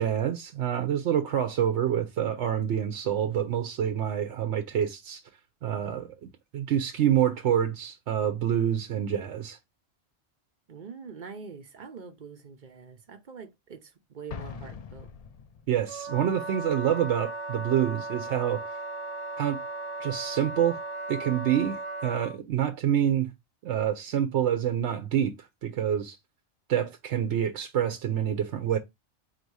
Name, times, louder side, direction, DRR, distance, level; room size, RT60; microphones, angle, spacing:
voice 1, 0.0-5.2 5.6-6.1 6.5-9.6 15.7-18.6 19.4-19.6 20.0-20.8 21.1-23.3 23.6-25.3 25.6-26.2 26.7-28.8, right 10 dB, 75° right, 0.9 m, -27 dB
voice 2, 10.7-15.1, right 5 dB, 50° right, 0.7 m, -44 dB
Explosion, 14.3-16.0, left 6 dB, 55° left, 0.4 m, -42 dB
Wind instrument woodwind instrument, 15.9-22.4, right 2 dB, 25° right, 1.1 m, -36 dB
4.3 x 2.6 x 4.6 m
omnidirectional pair, 1.2 m